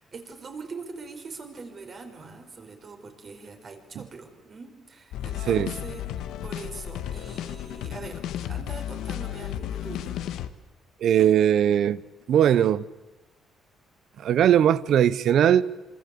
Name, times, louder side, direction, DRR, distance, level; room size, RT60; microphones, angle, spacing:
voice 1, 0.0-10.2, right 4 dB, 40° right, 5.1 m, -42 dB
sound 1, 5.1-10.5, left 11 dB, 85° left, 1.4 m, -33 dB
voice 2, 11.0-12.0 12.3-12.8 14.2-15.6, right 10 dB, 65° right, 0.9 m, -19 dB
26.5 x 26.0 x 8.6 m
cardioid pair, 130°, 0 cm